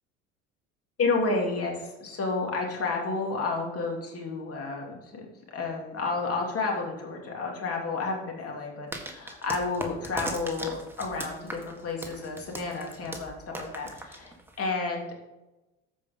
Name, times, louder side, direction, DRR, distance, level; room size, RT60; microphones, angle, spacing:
voice 1, 1.0-15.3, left 3 dB, 40° left, 0 dB, 3.0 m, -31 dB
sound 1, 8.9-14.7, right 1 dB, 5° right, 1.6 m, -39 dB
14.0 x 5.3 x 3.8 m, 1.0 s
hypercardioid pair, 65°, 36 cm